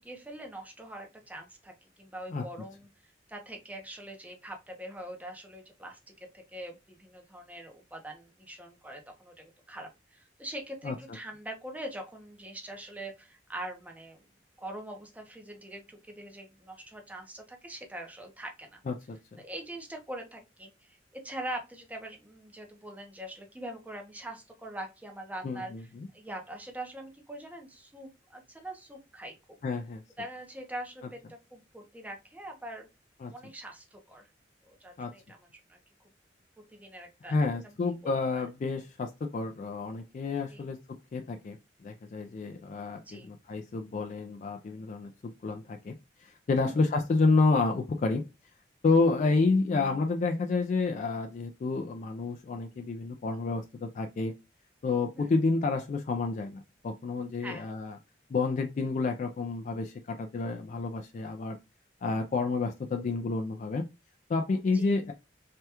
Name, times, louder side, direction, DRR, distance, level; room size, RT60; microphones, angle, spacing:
voice 1, 0.0-1.7 2.0-2.9 3.3-6.0 6.3-14.2 14.6-18.8 19.4-25.9 26.1-29.3 30.2-32.9 33.3-34.3 34.6-35.8 36.7-37.3 37.6-37.7 38.0-38.4 40.5-40.6 43.0-43.3 46.6-46.8 55.2-55.3 57.4-57.7 64.6-65.1, right 1 dB, 10° right, 3 dB, 0.6 m, -43 dB
voice 2, 18.9-19.2 25.4-26.1 29.6-30.0 33.2-33.3 35.0-35.1 37.2-40.8 41.1-41.6 41.8-45.9 46.2-48.2 48.8-54.3 54.8-58.0 58.3-61.6 62.0-63.8 64.3-65.1, left 3 dB, 40° left, 5 dB, 0.3 m, -29 dB
3.3 x 2.2 x 2.8 m, 0.25 s
head